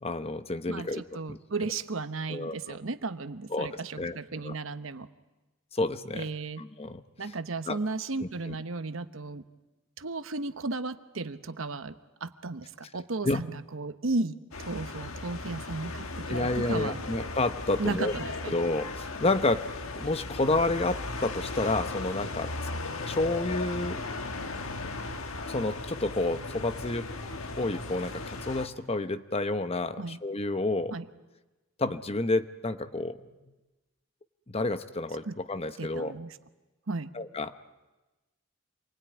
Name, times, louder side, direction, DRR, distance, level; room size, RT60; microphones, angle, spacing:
voice 1, 0.0-1.0 1.3-1.4 2.3-2.8 3.5-4.2 4.4-4.5 5.7-6.3 6.6-7.0 7.7-7.8 8.2-8.6 13.2-13.4 16.3-18.1 18.5-19.6 20.0-22.5 23.1-24.0 25.5-27.1 27.6-30.9 31.8-33.3 34.5-36.1 37.1-37.5, left 2 dB, 30° left, 11 dB, 0.8 m, -30 dB
voice 2, 0.7-5.1 6.1-6.6 7.2-9.4 10.0-17.0 17.8-18.5 30.0-30.2 30.9-31.0 35.3-35.4 35.8-36.4 36.9-37.1, right 3 dB, 75° right, 11 dB, 1.0 m, -34 dB
sound 1, 14.5-28.7, left 3 dB, 90° left, 1.5 m, -37 dB
27.5 x 20.5 x 9.5 m, 1.1 s
head